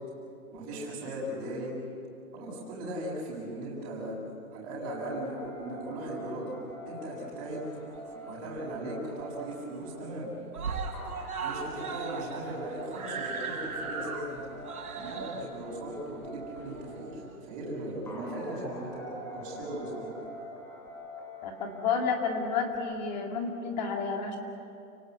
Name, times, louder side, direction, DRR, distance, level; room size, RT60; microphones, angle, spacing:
voice 1, 0.5-1.7 2.3-4.2 4.5-6.5 6.8-7.6 8.3-10.3 11.4-14.4 15.0-17.2 17.5-19.0 19.3-20.1, right 1 dB, 20° right, -7 dB, 6.8 m, -38 dB
sound 1, 4.9-23.0, equal, 5° left, 2.2 m, -45 dB
Screaming, 7.6-8.6 8.9-9.0 9.3-9.4 9.7-10.2 10.5-17.3 18.2-18.3, right 5 dB, 80° right, 4.9 m, -38 dB
voice 2, 21.4-24.4, left 5 dB, 30° left, 2 dB, 2.3 m, -31 dB
30.0 x 18.5 x 8.1 m, 2.6 s
hypercardioid pair, 170°, 44 cm